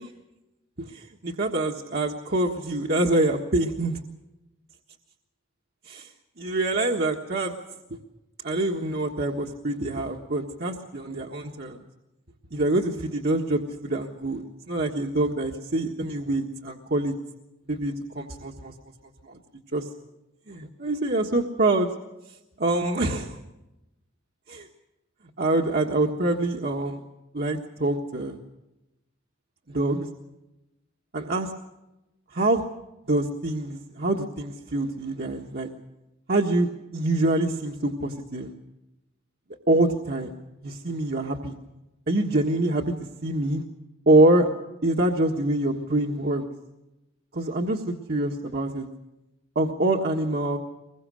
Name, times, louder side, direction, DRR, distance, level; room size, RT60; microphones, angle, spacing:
voice 1, 0.8-4.0 5.8-6.1 6.4-7.5 7.9-8.0 8.4-11.8 12.5-17.1 17.7-18.7 19.2-19.4 19.7-19.9 20.5-21.9 22.6-23.4 24.5-24.7 25.4-27.0 27.3-28.4 29.7-30.1 31.1-31.5 32.3-32.6 33.1-35.7 36.3-38.5 39.7-40.3 40.6-41.5 42.1-42.9 43.2-43.6 44.0-44.5 44.8-46.4 47.3-48.8 49.5-50.6, right 2 dB, 55° right, 1 dB, 1.6 m, -25 dB
24.5 x 22.0 x 6.4 m, 0.97 s
head